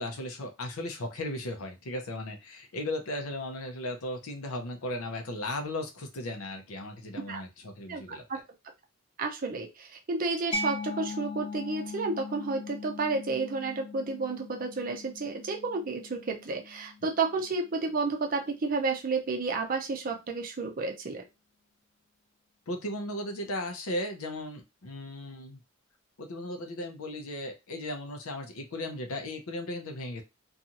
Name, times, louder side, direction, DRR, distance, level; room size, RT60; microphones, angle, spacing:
voice 1, 0.0-8.2 22.7-25.6 26.2-30.2, left 1 dB, 75° left, 4 dB, 0.6 m, -36 dB
voice 2, 7.9-8.4 9.2-21.2, right 4 dB, 40° right, 3 dB, 0.5 m, -31 dB
Mallet percussion, 10.5-17.9, left 3 dB, 25° left, 0.4 m, -40 dB
2.6 x 2.4 x 2.8 m, 0.24 s
head